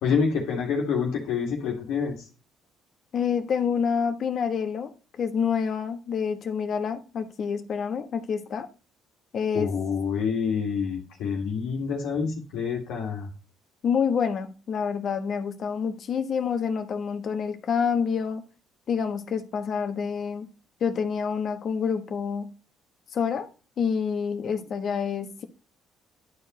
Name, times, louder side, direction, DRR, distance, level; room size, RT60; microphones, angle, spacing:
voice 1, 0.0-2.2 9.5-13.3, left 6 dB, 75° left, 1.9 m, -27 dB
voice 2, 3.1-8.7 9.3-9.7 13.8-18.4 18.9-20.5 20.8-22.5 23.1-23.5 23.8-25.4, left 6 dB, 55° left, 1.2 m, -27 dB
11.0 x 4.7 x 3.1 m
supercardioid pair, 65°, 0 cm